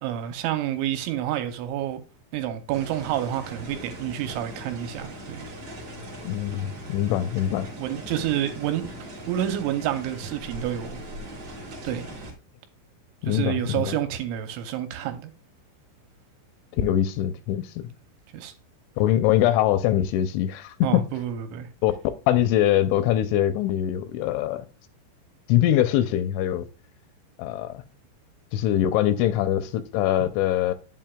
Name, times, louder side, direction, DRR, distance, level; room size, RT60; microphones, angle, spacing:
voice 1, 0.0-2.0 2.3-5.5 7.8-8.9 9.3-11.0 11.8-12.1 13.3-15.3 18.3-18.5 20.8-21.7, right 11 dB, 85° right, 3.0 m, -29 dB
sound 1, 2.7-12.3, right 1 dB, 60° right, 1.5 m, -40 dB
voice 2, 6.2-7.7 13.2-14.0 16.8-17.8 19.0-21.0 21.8-21.9 22.3-24.7 25.5-26.7 27.4-27.8 28.5-30.7, left 12 dB, 85° left, 2.8 m, -23 dB
8.8 x 7.5 x 2.3 m
omnidirectional pair, 5.6 m